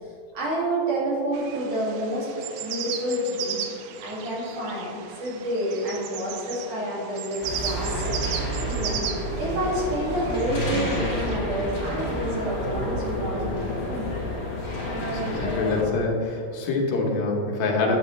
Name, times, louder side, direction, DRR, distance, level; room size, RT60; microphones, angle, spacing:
voice 1, 0.4-2.3 2.6-3.6 4.0-14.2, right 1 dB, 60° right, -6 dB, 3.6 m, -29 dB
sound 1, 1.3-11.4, right 8 dB, 85° right, 2.6 m, -36 dB
sound 2, 7.4-15.8, equal, 45° left, 1.3 m, -29 dB
voice 2, 15.1-18.0, left 3 dB, 75° left, -1 dB, 2.8 m, -25 dB
10.5 x 7.4 x 3.2 m, 2.4 s
omnidirectional pair, 4.3 m